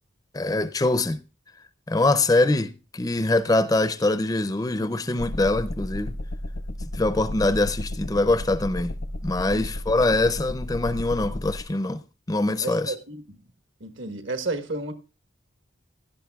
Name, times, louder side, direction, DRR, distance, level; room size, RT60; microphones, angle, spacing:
voice 1, 0.3-1.2 1.9-6.2 6.9-8.9 9.2-12.0 12.3-12.9, left 2 dB, 20° left, 0.5 m, -23 dB
sound 1, 5.2-11.6, left 1 dB, 80° left, 0.9 m, -33 dB
voice 2, 12.6-13.4 13.8-14.9, right 2 dB, 75° right, 1.3 m, -32 dB
16.5 x 11.0 x 2.3 m
head